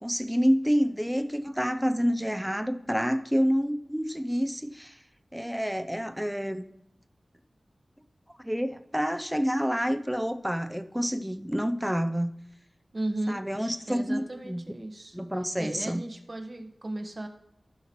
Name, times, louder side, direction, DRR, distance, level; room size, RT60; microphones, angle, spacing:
voice 1, 0.0-5.0 5.3-6.7 8.4-12.3 13.3-14.6 15.1-16.0, equal, 5° right, 9 dB, 0.6 m, -28 dB
voice 2, 12.9-15.2 15.6-17.3, right 1 dB, 40° right, 5 dB, 1.3 m, -35 dB
15.5 x 5.7 x 3.1 m, 0.82 s
wide cardioid pair, 75°, 0 cm